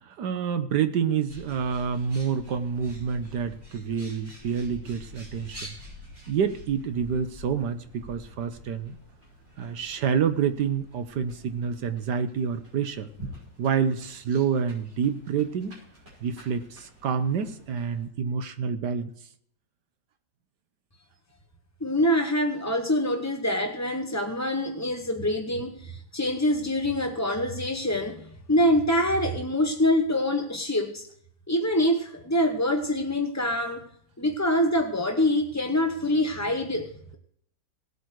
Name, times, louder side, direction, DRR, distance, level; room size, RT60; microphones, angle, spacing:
voice 1, 0.0-5.7 6.3-9.0 9.6-13.1 13.6-15.8 16.2-19.1, right 7 dB, 65° right, 10 dB, 1.4 m, -28 dB
Bird, 1.3-18.0, equal, 30° right, 6.3 m, -47 dB
voice 2, 21.8-31.1 31.5-33.9 34.2-37.2, left 1 dB, 20° left, 4 dB, 0.4 m, -25 dB
18.0 x 8.4 x 4.7 m, 0.68 s
omnidirectional pair, 2.0 m